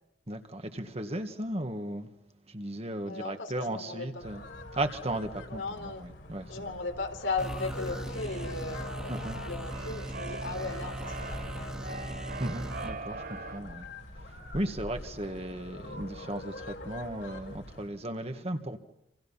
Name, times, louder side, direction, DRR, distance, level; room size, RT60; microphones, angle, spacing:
voice 1, 0.3-2.1 2.5-4.4 4.7-6.8 9.1-9.4 12.4-13.9 14.3-18.8, right 1 dB, 35° right, 1.9 m, -36 dB
voice 2, 3.0-4.2 5.5-6.0 6.5-9.2 9.4-12.0, left 3 dB, 85° left, 4.0 m, -37 dB
sound 1, 4.2-17.9, left 1 dB, 65° left, 3.9 m, -45 dB
sound 2, 7.4-12.9, right 1 dB, 5° right, 2.2 m, -39 dB
Keyboard (musical), 7.7-13.6, right 3 dB, 55° right, 4.2 m, -42 dB
28.0 x 28.0 x 5.8 m
head